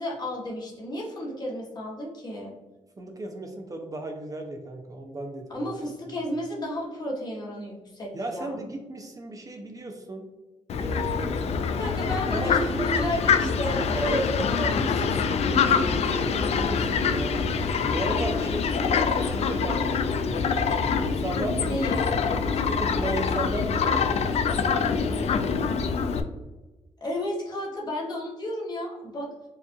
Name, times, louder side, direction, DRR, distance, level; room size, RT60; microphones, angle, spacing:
voice 1, 0.0-2.5 5.5-8.5 11.7-13.8 14.1-14.2 18.8-19.8 21.5-22.1 27.0-29.3, left 1 dB, 35° left, -3 dB, 1.2 m, -32 dB
voice 2, 3.0-5.7 8.1-10.2 10.8-11.6 12.3-12.9 13.4-17.4 17.9-19.8 20.2-20.3 21.0-21.8 22.6-24.4, right 2 dB, 30° right, 3 dB, 0.5 m, -35 dB
Fowl, 10.7-26.2, left 5 dB, 60° left, 0.4 m, -25 dB
4.8 x 2.5 x 2.6 m, 1.2 s
cardioid pair, 95°, 12 cm